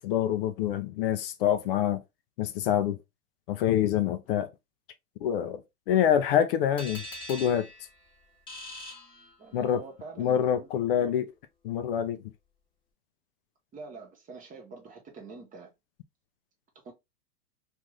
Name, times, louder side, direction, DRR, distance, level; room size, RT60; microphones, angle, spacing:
voice 1, 0.0-2.0 2.4-3.0 3.5-4.5 5.2-5.6 5.9-7.0 7.3-7.7 9.5-9.8 10.2-11.2 11.6-12.2, left 10 dB, 40° left, 0.5 m, -26 dB
sound 1, 6.8-9.8, left 1 dB, 10° left, 1.0 m, -43 dB
voice 2, 9.4-11.1 13.7-15.7 16.8-16.9, right 4 dB, 15° right, 1.0 m, -45 dB
2.6 x 2.5 x 3.2 m
hypercardioid pair, 120°, 47 cm